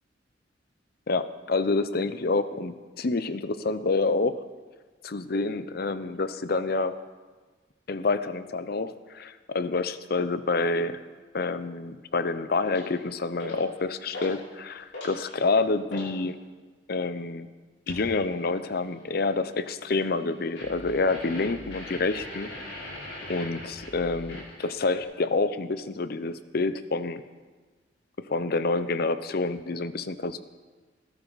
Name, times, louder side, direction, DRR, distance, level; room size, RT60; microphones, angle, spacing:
voice 1, 1.1-4.4 5.0-7.0 7.9-11.0 11.3-16.4 16.9-17.5 17.9-22.5 23.3-27.2 28.2-30.4, left 3 dB, 55° left, 13 dB, 0.7 m, -28 dB
sound 1, 12.6-12.9 13.4-13.7 14.1-14.4 14.7-16.1 17.9-18.1 20.6-25.0, left 1 dB, 70° left, 6.3 m, -40 dB
20.0 x 13.0 x 4.0 m, 1.4 s
head